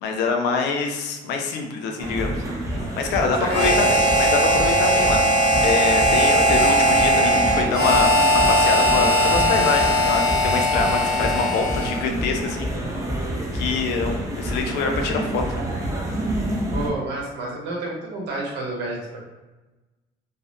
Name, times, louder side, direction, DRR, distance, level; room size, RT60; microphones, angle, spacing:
voice 1, 0.0-2.4 2.9-5.2 5.6-12.8 13.5-15.6, left 4 dB, 85° left, 3 dB, 0.4 m, -25 dB
sound 1, 2.0-16.9, right 1 dB, 20° right, 0.5 m, -28 dB
voice 2, 3.4-3.8 16.7-19.2, right 2 dB, 80° right, -2 dB, 0.8 m, -30 dB
Harmonica, 3.5-12.1, equal, 45° left, 0.8 m, -19 dB
2.4 x 2.0 x 2.6 m, 1.1 s
cardioid pair, 110°, 17 cm